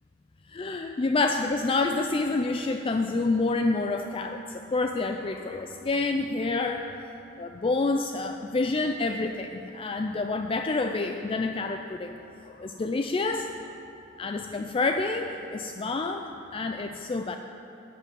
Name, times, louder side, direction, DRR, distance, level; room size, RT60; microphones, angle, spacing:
voice 1, 0.5-6.9 7.4-12.2 12.4-13.5 14.2-17.4, left 3 dB, 25° left, 5 dB, 0.4 m, -28 dB
12.5 x 5.8 x 8.8 m, 2.9 s
head